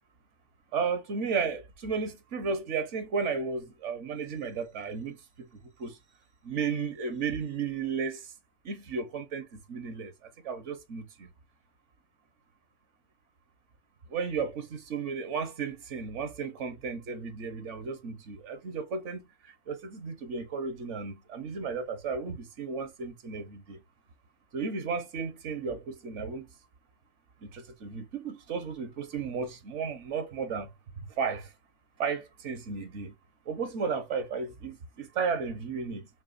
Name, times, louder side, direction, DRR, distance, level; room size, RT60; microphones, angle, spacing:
voice 1, 0.7-5.5 5.8-6.0 6.4-8.3 8.6-11.3 14.1-23.8 24.5-26.5 27.4-30.7 31.2-31.5 32.0-33.1 33.5-36.1, right 5 dB, 75° right, 1.3 m, -34 dB
6.0 x 2.3 x 2.5 m
omnidirectional pair, 1.2 m